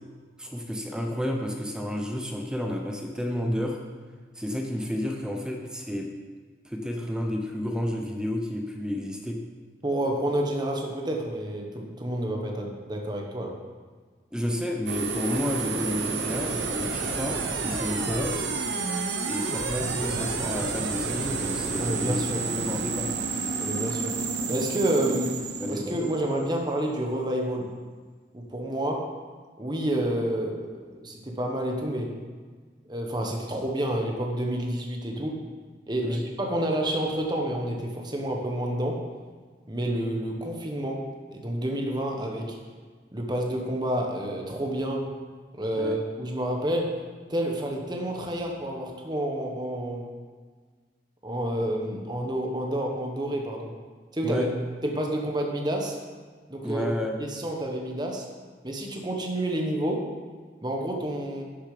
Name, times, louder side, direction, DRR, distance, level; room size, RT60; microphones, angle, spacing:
voice 1, 0.4-3.8 4.3-6.1 6.6-9.4 14.3-18.4 19.3-22.2 22.5-23.1 25.1-25.2 25.6-26.0 36.0-36.2 45.7-46.0 54.2-54.5 56.6-57.2, left 1 dB, 5° right, 1 dB, 0.8 m, -31 dB
voice 2, 9.8-13.5 20.0-20.2 21.8-22.4 23.6-24.1 24.5-25.3 25.7-27.7 28.3-29.1 29.6-32.2 32.9-35.4 35.9-39.0 39.7-41.0 41.3-42.6 43.1-45.1 45.6-47.0 47.3-50.0 51.2-53.7 54.1-54.5 54.8-56.0 56.5-56.9 57.2-58.2 58.6-60.1 60.6-61.4, right 1 dB, 25° right, 1 dB, 1.3 m, -29 dB
sound 1, 14.9-26.8, right 4 dB, 80° right, 1.1 m, -30 dB
11.5 x 7.1 x 5.1 m, 1.5 s
head